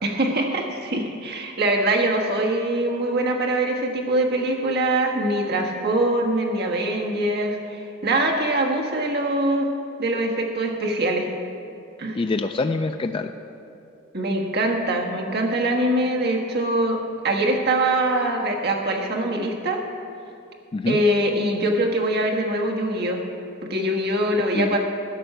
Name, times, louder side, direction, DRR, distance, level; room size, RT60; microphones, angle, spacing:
voice 1, 0.0-9.7 10.0-11.3 12.0-12.2 14.1-17.0 17.2-19.8 20.9-23.2 23.6-24.8, right 1 dB, 55° right, 1 dB, 1.5 m, -23 dB
voice 2, 12.1-13.3 20.7-21.0 24.5-24.8, left 3 dB, 25° left, 7 dB, 0.3 m, -25 dB
12.0 x 6.2 x 7.7 m, 2.7 s
head